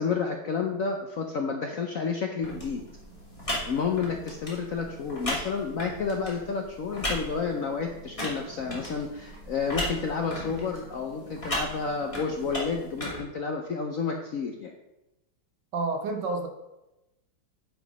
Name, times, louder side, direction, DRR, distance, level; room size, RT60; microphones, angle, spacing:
voice 1, 0.0-2.8 3.7-14.7, left 5 dB, 65° left, 3 dB, 0.8 m, -30 dB
sound 1, 2.4-13.2, equal, 15° left, 2.3 m, -36 dB
voice 2, 15.7-16.5, right 3 dB, 65° right, 4 dB, 1.7 m, -29 dB
9.0 x 5.0 x 5.2 m, 0.96 s
omnidirectional pair, 2.2 m